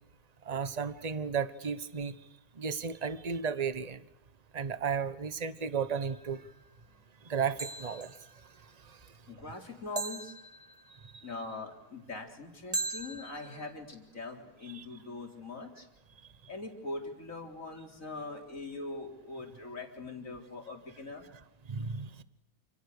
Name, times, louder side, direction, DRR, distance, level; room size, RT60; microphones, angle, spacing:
voice 1, 0.5-2.1 2.6-4.0 4.5-6.4 7.2-8.1 14.7-14.9 21.7-22.2, right 6 dB, 25° right, 13 dB, 0.9 m, -34 dB
sound 1, 6.1-6.4 7.6-8.3 10.0-11.0 12.7-13.7, right 3 dB, 10° right, 3.6 m, -39 dB
voice 2, 9.3-10.3 11.2-15.9 16.5-21.3, left 3 dB, 40° left, 2 dB, 4.3 m, -42 dB
29.0 x 27.5 x 6.8 m, 0.87 s
omnidirectional pair, 2.2 m